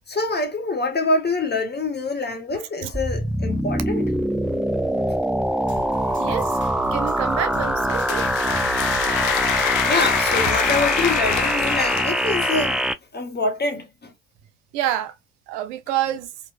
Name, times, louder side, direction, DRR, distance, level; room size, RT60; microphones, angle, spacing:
voice 1, 0.0-4.1 6.1-6.2 9.8-12.8 13.1-14.1, left 3 dB, 30° left, 1.3 m, -25 dB
sound 1, 2.9-12.9, equal, ahead, 0.4 m, -23 dB
sound 2, 5.6-11.9, right 4 dB, 35° right, 1.5 m, -38 dB
voice 2, 6.2-6.5 6.9-8.3 10.5-10.6 14.7-15.1 15.5-16.3, right 11 dB, 90° right, 0.5 m, -27 dB
sound 3, 7.6-12.7, left 12 dB, 70° left, 0.6 m, -26 dB
3.0 x 2.5 x 2.4 m
hypercardioid pair, 55°, 34 cm